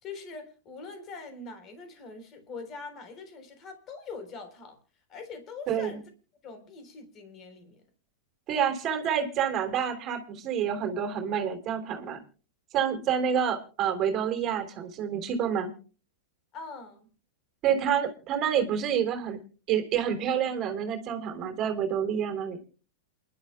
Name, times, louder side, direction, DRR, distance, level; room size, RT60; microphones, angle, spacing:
voice 1, 0.0-4.8 5.1-6.0 6.4-7.8 16.5-17.1, left 4 dB, 30° left, 3.8 m, -43 dB
voice 2, 5.7-6.0 8.5-12.2 12.7-15.7 17.6-19.4 19.7-22.6, right 8 dB, 30° right, 3.3 m, -28 dB
28.5 x 11.5 x 2.2 m
supercardioid pair, 145°, 0 cm